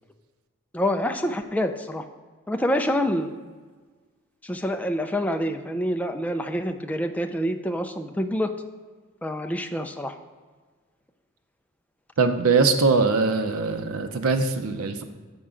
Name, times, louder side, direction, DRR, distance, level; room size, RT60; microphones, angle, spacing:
voice 1, 0.7-2.0 2.5-3.4 4.4-8.5 9.2-10.1, equal, 5° left, 5 dB, 0.3 m, -26 dB
voice 2, 12.2-15.0, right 4 dB, 90° right, 7 dB, 0.6 m, -22 dB
7.0 x 5.4 x 3.7 m, 1.4 s
head